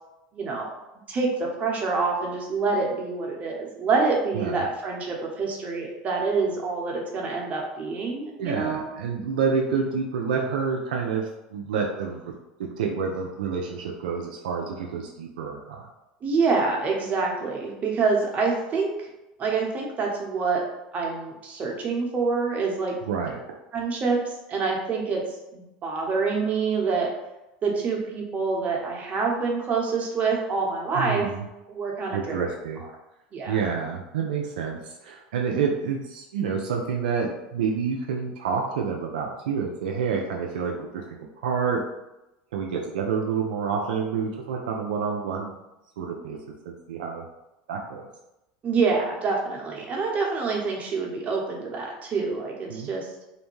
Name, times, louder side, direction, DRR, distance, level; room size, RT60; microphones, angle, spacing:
voice 1, 0.3-0.7 1.1-8.9 16.2-18.9 19.4-20.6 20.9-22.9 23.7-24.2 24.5-25.2 25.5-27.1 27.6-31.3 31.7-32.4 33.3-33.6 48.6-53.1, right 4 dB, 35° right, -1 dB, 0.8 m, -26 dB
voice 2, 8.4-12.3 12.8-15.9 23.1-23.4 30.9-31.5 32.1-32.8 33.4-41.8 42.5-45.5 46.0-46.4 46.7-47.2 47.7-48.0 52.7-52.9, right 6 dB, 85° right, 0 dB, 0.4 m, -28 dB
2.6 x 2.1 x 3.1 m, 0.93 s
hypercardioid pair, 95°, 4 cm